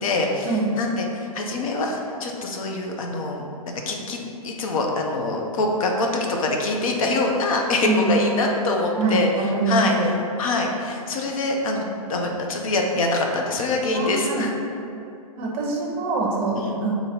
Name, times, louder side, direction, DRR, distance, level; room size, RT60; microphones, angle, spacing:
voice 1, 0.0-3.4 3.9-9.3 9.7-10.1 10.4-14.5 16.6-16.8, left 2 dB, 65° left, 1 dB, 0.7 m, -24 dB
voice 2, 7.8-8.2 9.0-10.1 13.9-14.5 15.4-16.9, right 3 dB, 30° right, -1 dB, 0.7 m, -24 dB
3.9 x 2.9 x 4.2 m, 2.6 s
hypercardioid pair, 130°, 19 cm